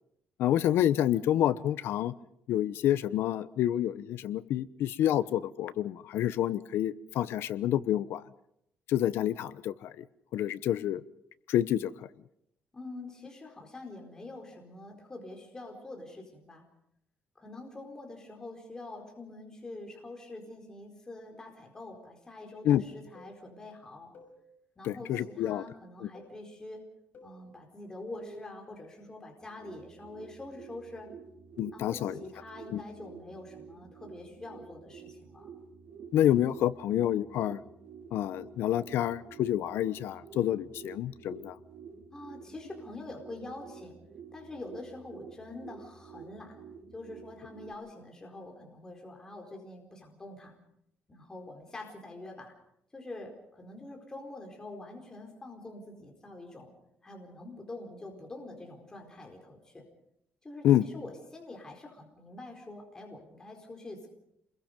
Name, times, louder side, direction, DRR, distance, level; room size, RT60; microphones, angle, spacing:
voice 1, 0.4-2.1 2.5-8.2 8.9-10.0 10.3-11.0 11.5-11.9 22.6-22.8 24.8-25.6 26.0-26.1 31.6-32.1 32.7-32.8 36.1-37.6 38.1-41.6 60.6-60.9, left 11 dB, 80° left, 14 dB, 0.9 m, -28 dB
voice 2, 12.7-16.6 17.4-24.1 24.8-26.8 27.2-31.1 31.7-35.5 42.1-44.0 44.3-46.6 46.9-50.6 51.1-52.5 52.9-56.7 57.0-59.8 60.4-64.1, left 2 dB, 15° left, 1 dB, 4.4 m, -45 dB
sound 1, 23.1-23.4 24.1-24.4 25.1-25.4 26.1-26.4 27.1-27.4 28.1-28.5, equal, 50° left, 6.7 m, -51 dB
sound 2, 29.3-47.7, right 6 dB, 70° right, 3.1 m, -50 dB
28.5 x 22.0 x 5.3 m, 0.75 s
cardioid pair, 150°, 4 cm